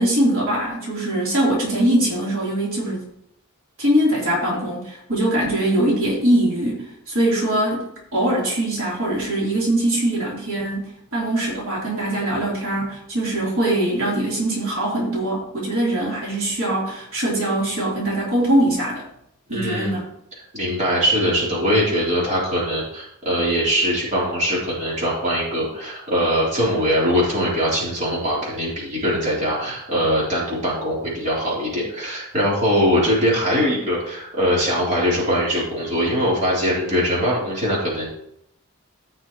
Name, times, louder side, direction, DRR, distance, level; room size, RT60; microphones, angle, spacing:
voice 1, 0.0-3.1 3.8-19.1 19.5-20.1, right 1 dB, 70° right, -5 dB, 3.6 m, -22 dB
voice 2, 19.5-19.9 20.5-38.1, equal, 35° right, -7 dB, 3.8 m, -22 dB
15.5 x 6.1 x 3.1 m, 0.74 s
head